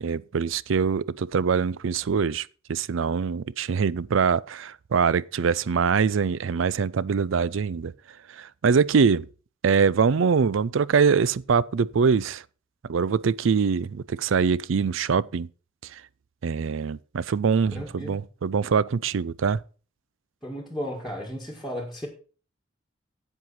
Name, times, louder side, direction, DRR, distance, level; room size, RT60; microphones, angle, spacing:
voice 1, 0.0-7.9 8.4-9.3 9.6-12.4 12.9-15.5 16.4-19.6, right 5 dB, 70° right, 0.4 m, -23 dB
voice 2, 17.7-18.2 20.4-22.1, equal, ahead, 1.8 m, -34 dB
10.5 x 7.9 x 4.3 m
head